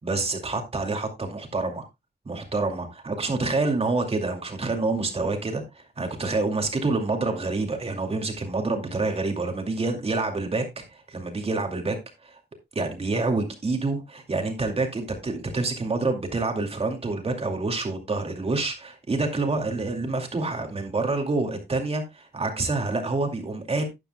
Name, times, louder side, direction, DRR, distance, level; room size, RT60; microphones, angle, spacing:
voice 1, 0.0-1.9 2.2-12.4 12.7-23.8, right 3 dB, 35° right, 2.4 m, -27 dB
12.5 x 10.5 x 2.2 m
wide cardioid pair, 170°, 17 cm